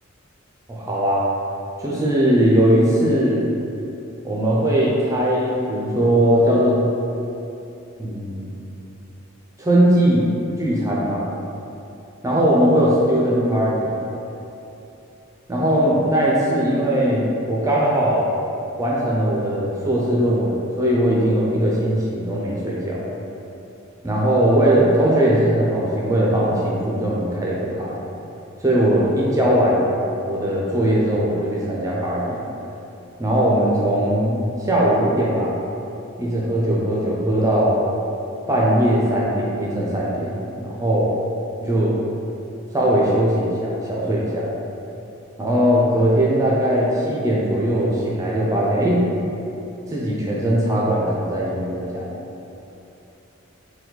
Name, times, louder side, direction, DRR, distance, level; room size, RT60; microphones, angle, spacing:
voice 1, 0.7-1.3 1.8-3.4 4.2-6.8 8.0-8.7 9.6-10.3 10.6-11.2 12.2-14.1 15.5-18.3 18.8-23.0 24.0-27.9 28.6-29.9 30.2-32.4 33.2-35.5 36.2-37.8 38.5-41.1 41.6-42.1 42.7-44.5 45.4-49.0 49.9-52.1, right 1 dB, 15° right, -5 dB, 0.4 m, -19 dB
4.5 x 2.2 x 3.8 m, 2.9 s
head